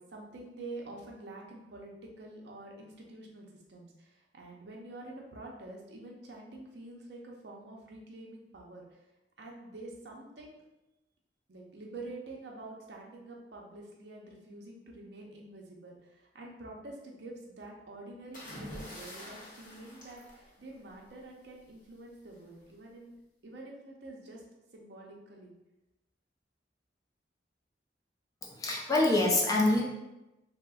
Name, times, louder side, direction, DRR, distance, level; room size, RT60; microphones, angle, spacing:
voice 1, 0.0-1.9 2.2-9.0 9.4-10.6 11.5-23.1 23.4-24.4 24.7-25.5, right 2 dB, 65° right, -1 dB, 0.5 m, -47 dB
sound 1, 18.3-21.1 22.3-22.6, left 1 dB, 45° left, 0.7 m, -46 dB
voice 2, 28.4-29.8, left 2 dB, 20° left, -2 dB, 0.4 m, -26 dB
3.5 x 2.0 x 2.3 m, 0.99 s
head